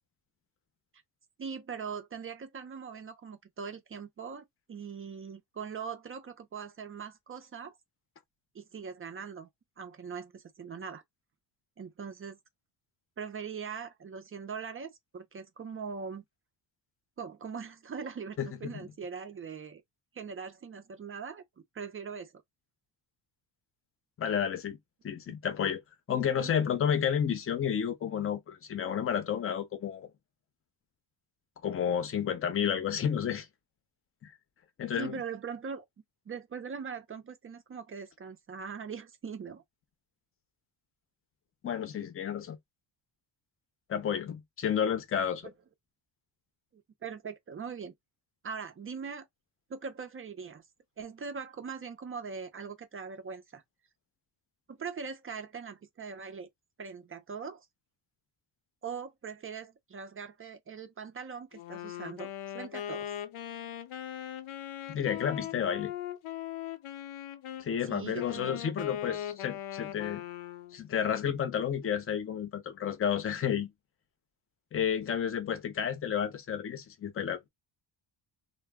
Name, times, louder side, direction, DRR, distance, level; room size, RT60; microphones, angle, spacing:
voice 1, 1.4-7.7 8.5-9.5 9.8-11.0 11.8-12.4 13.2-16.2 17.2-19.8 20.1-21.4 21.7-22.3 26.1-26.6 34.9-35.8 36.3-39.6 45.4-45.5 46.7-47.9 48.4-49.3 49.7-50.6 51.0-53.6 54.7-56.5 56.8-57.7 58.8-63.1 67.8-68.6, right 6 dB, 30° right, 0.4 m, -41 dB
voice 2, 18.4-18.7 24.2-24.8 25.0-25.8 26.1-30.1 31.6-33.5 34.2-34.3 34.8-35.2 41.6-42.6 43.9-45.5 64.9-65.9 67.6-70.2 70.7-73.7 74.7-77.4, left 8 dB, 30° left, 0.6 m, -31 dB
Wind instrument woodwind instrument, 61.5-67.7 68.2-70.8, left 11 dB, 80° left, 0.7 m, -39 dB
2.1 x 2.0 x 3.4 m
cardioid pair, 145°, 49 cm